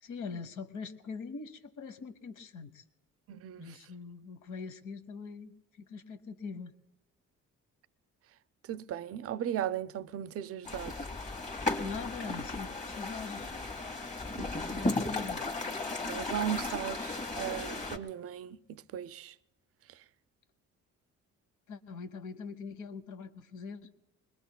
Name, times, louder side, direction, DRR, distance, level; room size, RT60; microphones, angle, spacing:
voice 1, 0.0-2.8 3.6-6.7 11.8-13.5 14.4-15.4 21.7-23.9, left 5 dB, 80° left, 1.1 m, -42 dB
voice 2, 3.3-3.8 8.7-11.1 16.1-19.3, right 10 dB, 50° right, 0.4 m, -37 dB
sound 1, 10.6-18.0, left 2 dB, 25° left, 1.8 m, -35 dB
25.0 x 21.0 x 2.2 m
cardioid pair, 90°, 30 cm